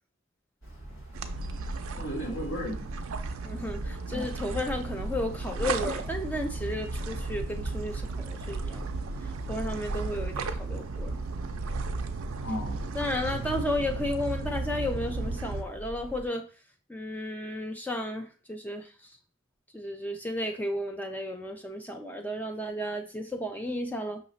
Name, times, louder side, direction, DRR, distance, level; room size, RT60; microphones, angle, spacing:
sound 1, 0.6-16.3, right 1 dB, 80° left, 1.6 m, -44 dB
sound 2, 1.1-15.6, right 3 dB, 85° right, 0.4 m, -34 dB
voice 1, 2.0-2.9 4.0-4.3 12.4-13.6, equal, 60° left, -3 dB, 1.6 m, -36 dB
voice 2, 3.4-8.9 9.5-11.2 12.9-16.5 16.9-18.9 19.7-24.2, left 1 dB, 10° left, 5 dB, 0.4 m, -33 dB
5.6 x 3.0 x 2.6 m, 0.36 s
head